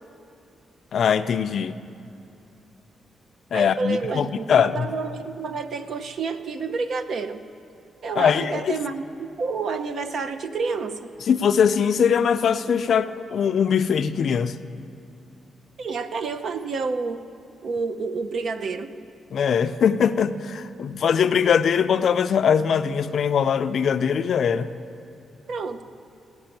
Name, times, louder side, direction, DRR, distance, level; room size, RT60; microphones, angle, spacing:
voice 1, 0.9-1.8 3.5-4.9 8.2-8.8 11.3-14.6 19.3-24.7, left 7 dB, 55° left, 11 dB, 0.4 m, -21 dB
voice 2, 3.5-7.4 8.0-11.1 15.8-17.2 17.6-18.9 25.5-25.8, right 4 dB, 55° right, 9 dB, 0.6 m, -29 dB
16.5 x 6.0 x 8.9 m, 2.7 s
wide cardioid pair, 150°, 0 cm